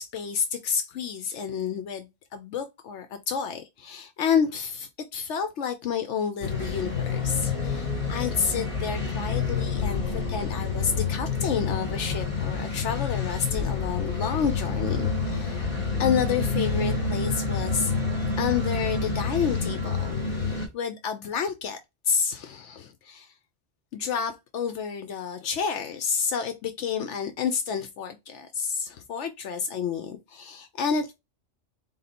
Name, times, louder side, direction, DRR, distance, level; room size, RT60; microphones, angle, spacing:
voice 1, 0.0-15.6 16.0-17.9 18.4-21.8 22.1-23.3 23.9-31.1, left 6 dB, 75° left, 0.9 m, -30 dB
sound 1, 6.4-20.7, left 4 dB, 45° left, 1.7 m, -28 dB
4.0 x 2.7 x 4.1 m
omnidirectional pair, 1.2 m